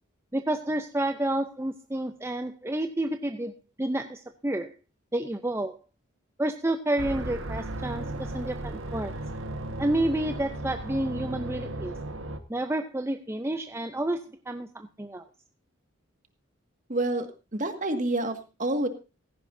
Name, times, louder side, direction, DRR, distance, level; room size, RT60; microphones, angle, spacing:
voice 1, 0.3-3.5 3.8-4.7 5.1-5.8 6.4-9.1 9.8-11.9 12.5-15.2, right 1 dB, 15° right, 7 dB, 0.6 m, -30 dB
sound 1, 7.0-12.4, right 1 dB, 85° right, 1.6 m, -35 dB
voice 2, 16.9-17.3 17.5-18.9, right 2 dB, 40° right, 7 dB, 1.9 m, -28 dB
16.5 x 14.5 x 2.7 m, 0.30 s
head